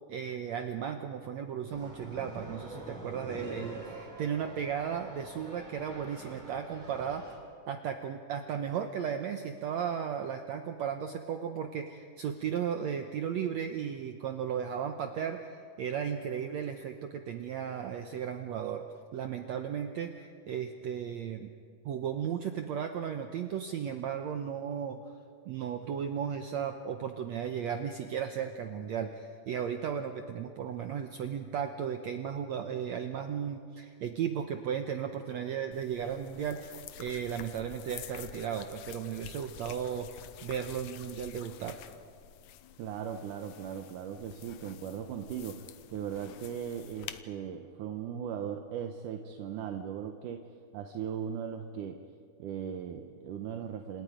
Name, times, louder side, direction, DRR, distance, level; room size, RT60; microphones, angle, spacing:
voice 1, 0.1-7.3 7.7-18.9 19.1-21.5 21.8-25.0 25.4-41.8, right 8 dB, 85° right, 6 dB, 1.5 m, -35 dB
sound 1, 1.7-7.4, right 1 dB, ahead, 7.7 m, -46 dB
sound 2, 35.7-47.2, left 11 dB, 80° left, 1.6 m, -49 dB
voice 2, 42.8-50.5 50.7-52.0 52.4-54.0, right 8 dB, 70° right, 6 dB, 2.2 m, -38 dB
29.5 x 27.0 x 5.1 m, 2.2 s
omnidirectional pair, 4.4 m